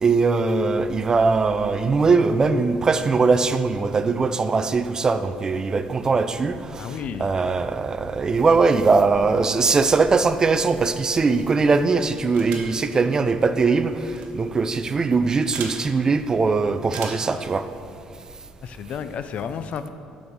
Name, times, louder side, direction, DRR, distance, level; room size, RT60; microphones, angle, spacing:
voice 1, 0.0-17.7, right 4 dB, 25° right, 11 dB, 0.3 m, -21 dB
voice 2, 6.8-7.3 18.6-19.9, left 7 dB, 50° left, 11 dB, 0.4 m, -31 dB
sound 1, 12.3-12.8 14.1-14.3 15.5-15.8 16.9-17.3, right 5 dB, 80° right, 1.1 m, -36 dB
6.9 x 5.2 x 6.2 m, 2.5 s
cardioid pair, 115°, 3 cm